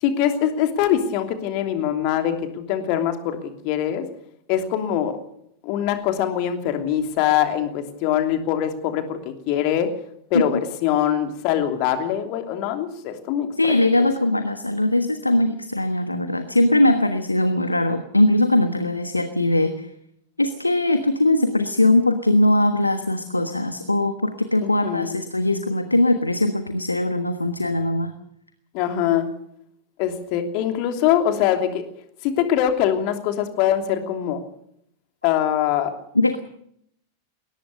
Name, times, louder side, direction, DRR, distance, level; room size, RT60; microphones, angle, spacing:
voice 1, 0.0-4.1 4.5-5.2 5.6-9.9 10.3-14.1 24.6-25.2 28.7-29.3 30.0-31.8 32.2-34.4 35.2-35.9, left 10 dB, 45° left, 6 dB, 3.0 m, -23 dB
voice 2, 13.6-19.9 20.4-28.1 36.1-36.4, left 1 dB, 85° left, 9 dB, 1.3 m, -20 dB
21.5 x 18.5 x 6.7 m, 0.72 s
figure-of-eight pair, 90°, 0 cm